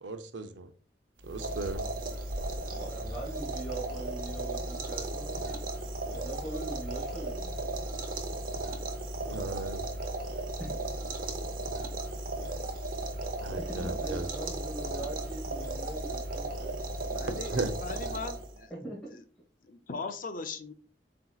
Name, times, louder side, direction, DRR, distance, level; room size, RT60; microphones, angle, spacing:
voice 1, 0.0-0.7 1.2-1.9 9.2-9.8 13.4-14.3 17.5-17.7, right 3 dB, 85° right, 0.6 m, -36 dB
sound 1, 1.2-18.6, right 2 dB, 50° right, 0.8 m, -35 dB
voice 2, 2.7-5.6 6.0-7.6 10.6-10.8 13.4-16.9 18.7-19.0, right 2 dB, 5° left, 1.3 m, -42 dB
voice 3, 17.1-18.7 19.6-20.7, left 4 dB, 50° left, 0.5 m, -39 dB
7.7 x 2.9 x 2.3 m
head